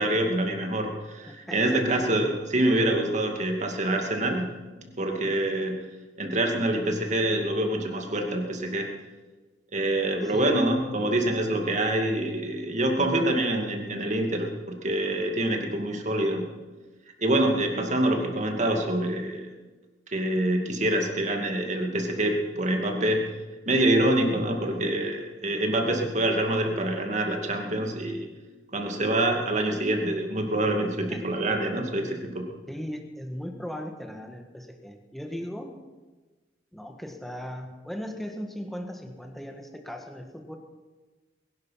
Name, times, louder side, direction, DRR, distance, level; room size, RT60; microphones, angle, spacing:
voice 1, 0.0-4.5 4.8-5.8 6.2-8.9 9.7-16.5 17.2-19.5 20.1-23.2 23.7-28.3 28.7-32.5, right 1 dB, 40° right, 3 dB, 2.4 m, -26 dB
voice 2, 1.3-1.8 10.2-10.5 31.1-31.2 32.7-35.8 36.7-40.6, equal, ahead, 4 dB, 1.6 m, -38 dB
21.5 x 11.5 x 5.8 m, 1.2 s
head